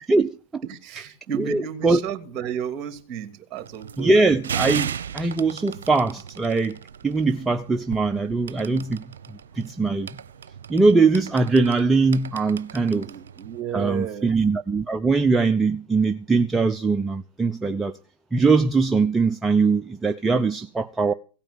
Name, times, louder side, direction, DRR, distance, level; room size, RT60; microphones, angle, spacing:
voice 1, 0.1-0.6 1.3-2.0 4.0-6.8 7.0-9.0 9.6-10.1 10.7-13.1 13.7-17.9 18.3-21.1, right 3 dB, 10° right, 0.7 m, -21 dB
voice 2, 0.6-4.2 12.9-14.4, right 8 dB, 35° right, 2.6 m, -33 dB
sound 1, 3.6-13.6, right 8 dB, 80° right, 0.7 m, -36 dB
17.0 x 8.9 x 6.8 m
hypercardioid pair, 110°, 0 cm